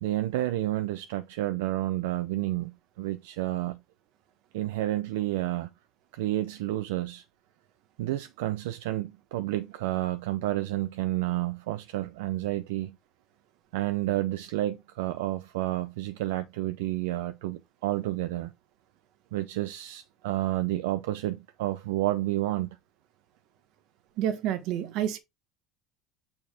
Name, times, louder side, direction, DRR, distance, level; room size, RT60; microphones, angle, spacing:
voice 1, 0.0-3.8 4.5-5.7 6.1-7.2 8.0-13.0 13.7-18.5 19.3-22.8, right 15 dB, 85° right, 0.5 m, -30 dB
voice 2, 24.2-25.2, right 10 dB, 65° right, 1.3 m, -29 dB
6.5 x 4.2 x 3.6 m
supercardioid pair, 95°, 0 cm